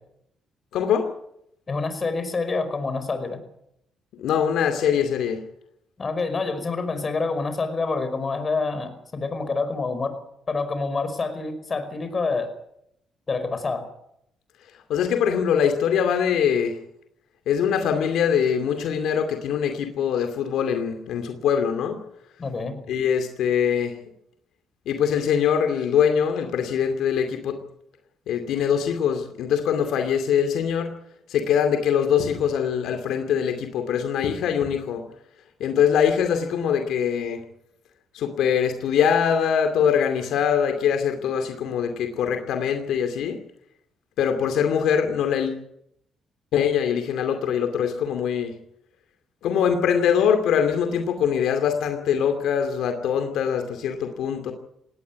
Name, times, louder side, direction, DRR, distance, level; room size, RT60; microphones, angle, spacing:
voice 1, 0.7-1.1 4.1-5.4 14.9-16.8 17.5-22.0 22.9-23.9 24.9-27.6 28.3-30.9 31.3-35.0 35.6-37.4 38.1-43.4 44.2-45.6 46.5-48.5 49.4-54.5, left 8 dB, 80° left, 7 dB, 2.5 m, -23 dB
voice 2, 1.7-3.4 6.0-10.2 10.5-12.5 13.3-13.9 22.4-22.8, left 3 dB, 35° left, 10 dB, 5.3 m, -27 dB
18.5 x 18.0 x 9.5 m, 0.77 s
cardioid pair, 90°, 0 cm